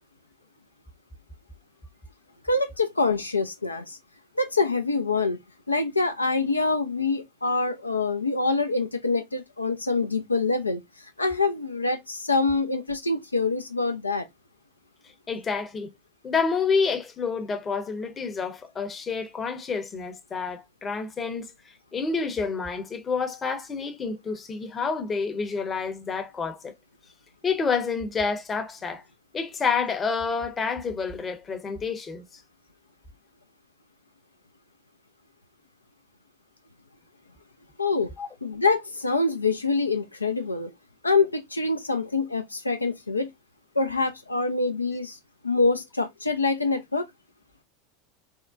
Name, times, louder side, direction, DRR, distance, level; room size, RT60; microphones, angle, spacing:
voice 1, 2.4-4.0 4.4-5.4 5.7-14.3 37.8-38.1 38.4-40.7 41.0-43.3 43.8-45.2 45.4-47.0, left 3 dB, 90° left, 0.3 m, -25 dB
voice 2, 15.3-15.9 16.2-26.7 27.4-29.0 29.3-32.4 38.2-38.3, left 5 dB, 25° left, 0.7 m, -29 dB
3.5 x 2.1 x 2.4 m
figure-of-eight pair, 80°, 0 cm